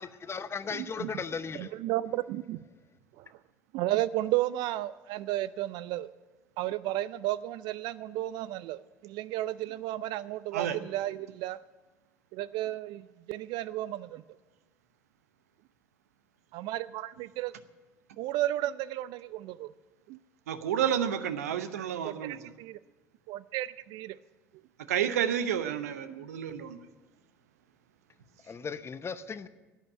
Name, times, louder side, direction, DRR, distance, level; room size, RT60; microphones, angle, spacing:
voice 1, 0.0-1.7 28.4-29.5, left 5 dB, 30° left, 13 dB, 0.8 m, -37 dB
voice 2, 0.7-1.1 1.6-2.6 3.2-3.3 3.7-6.1 6.6-11.6 12.3-14.2 16.5-17.5 18.2-19.7 20.1-20.2 22.0-22.8 23.3-24.2 26.1-26.2, right 15 dB, 60° right, 18 dB, 0.4 m, -33 dB
voice 3, 20.5-22.4 24.9-26.8, right 9 dB, 80° right, 11 dB, 0.8 m, -30 dB
10.5 x 9.2 x 9.4 m, 1.2 s
figure-of-eight pair, 60°, 8 cm